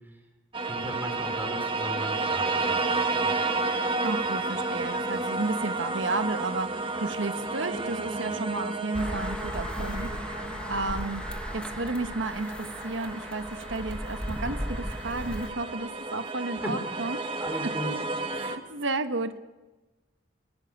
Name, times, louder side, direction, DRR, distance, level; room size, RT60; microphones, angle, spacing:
voice 1, 0.5-2.8 3.1-3.4 16.6-17.1 17.4-17.9, equal, 10° right, 4 dB, 3.1 m, -36 dB
sound 1, 0.5-18.6, right 3 dB, 25° right, 1.4 m, -32 dB
voice 2, 4.0-11.2 11.5-17.2 18.3-19.4, right 2 dB, 70° right, 10 dB, 1.3 m, -32 dB
sound 2, 8.9-15.5, equal, 5° left, 1.3 m, -36 dB
24.0 x 15.5 x 7.2 m, 1.2 s
head